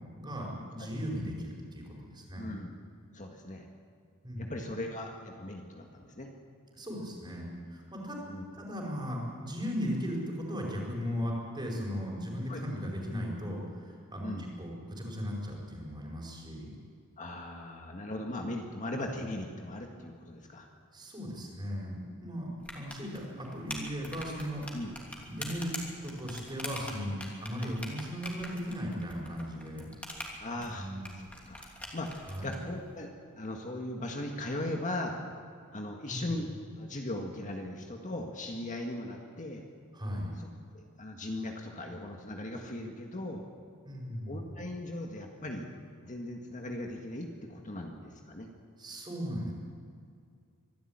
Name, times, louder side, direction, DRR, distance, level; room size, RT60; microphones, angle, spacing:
voice 1, 0.0-2.5 4.2-4.6 6.7-8.2 8.5-16.7 20.9-22.5 22.7-24.8 25.2-25.7 26.0-29.9 30.7-31.0 32.3-32.6 36.1-36.2 39.9-40.3 43.8-44.7 48.8-49.5, equal, 20° right, -2 dB, 5.0 m, -37 dB
voice 2, 2.4-2.7 3.1-3.7 4.4-6.3 8.2-8.4 12.5-12.6 14.2-14.5 17.2-20.7 24.7-24.9 27.6-27.7 30.4-31.0 31.5-31.7 31.9-35.2 35.7-36.5 36.8-39.6 40.4-40.5 40.7-43.4 44.3-45.7 46.0-48.5, left 1 dB, 35° left, 2 dB, 1.8 m, -38 dB
sound 1, 22.6-32.6, left 1 dB, 5° left, 3.0 m, -44 dB
24.5 x 12.5 x 8.9 m, 2.3 s
head